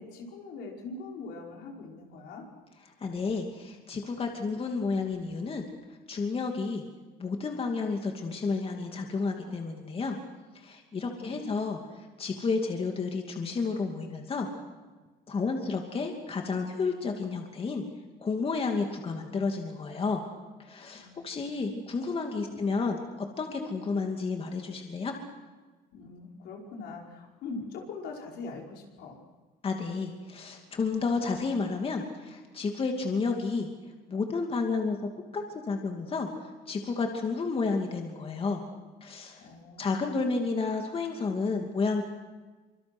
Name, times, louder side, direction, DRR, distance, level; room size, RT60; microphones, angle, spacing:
voice 1, 0.0-2.5 11.0-11.6 20.9-21.9 22.5-22.7 25.9-29.2 39.4-40.3 41.6-41.8, left 3 dB, 80° left, 0 dB, 5.3 m, -43 dB
voice 2, 3.0-5.6 6.1-6.8 7.2-10.2 10.6-11.8 12.2-14.5 15.3-17.8 18.2-20.2 20.6-23.0 23.4-25.1 29.6-33.7 34.1-35.0 35.3-36.3 36.7-38.6 39.0-39.4 39.8-42.0, left 4 dB, 35° left, 3 dB, 2.7 m, -31 dB
25.0 x 24.0 x 6.3 m, 1.3 s
cardioid pair, 110°, 17 cm